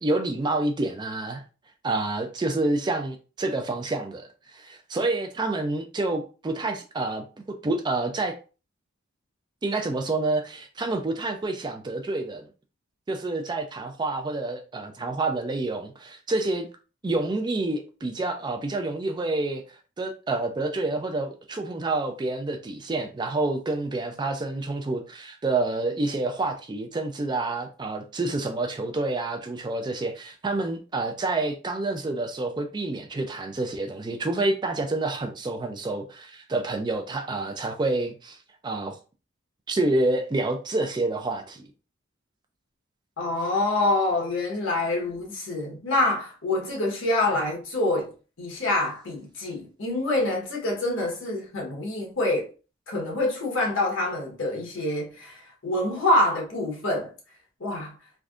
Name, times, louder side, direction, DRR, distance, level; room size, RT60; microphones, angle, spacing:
voice 1, 0.0-1.4 1.8-4.3 4.5-7.2 7.6-8.3 9.6-12.5 13.1-16.7 17.0-19.6 20.0-38.4 38.6-39.0 39.7-41.6, right 2 dB, 20° right, 0.4 m, -28 dB
voice 2, 43.2-48.1 48.4-52.5 52.9-57.1 57.6-57.9, left 2 dB, 75° left, 1.2 m, -26 dB
3.4 x 2.6 x 2.4 m
head